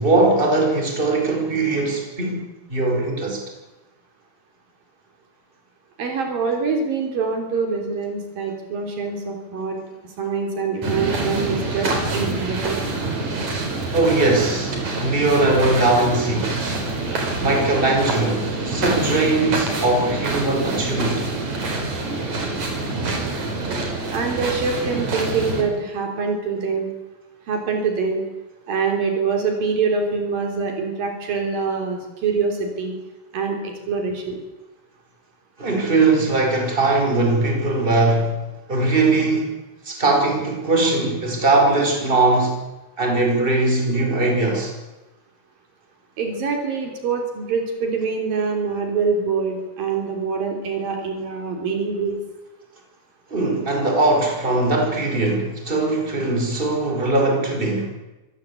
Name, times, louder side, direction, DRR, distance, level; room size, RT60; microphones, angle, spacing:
voice 1, 0.0-2.4 2.7-3.4 13.9-16.6 17.4-21.3 35.6-38.4 38.7-39.5 39.8-42.6 43.0-44.7 53.3-57.9, right 2 dB, 15° right, 5.1 m, -20 dB
voice 2, 6.0-9.8 10.2-12.8 24.1-26.9 27.5-28.3 28.7-33.0 33.3-34.4 46.2-52.2, right 5 dB, 65° right, 5.1 m, -24 dB
sound 1, 10.8-25.6, right 3 dB, 50° right, 5.7 m, -26 dB
25.5 x 17.5 x 8.4 m
omnidirectional pair, 4.3 m